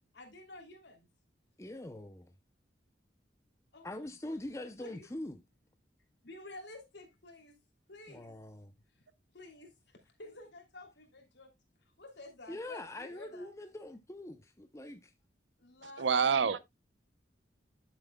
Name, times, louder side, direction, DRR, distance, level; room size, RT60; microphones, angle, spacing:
voice 1, 0.1-1.1 3.7-3.9 4.2-4.5 4.8-5.1 6.2-7.6 7.9-8.3 8.9-9.0 9.3-11.5 12.0-13.5 15.6-16.3, left 2 dB, 70° left, 2.9 m, -51 dB
voice 2, 1.6-2.3 3.8-5.4 8.1-8.7 12.5-15.1, left 1 dB, 15° left, 0.6 m, -43 dB
voice 3, 16.0-16.6, right 6 dB, 80° right, 0.7 m, -27 dB
11.0 x 7.4 x 2.2 m
head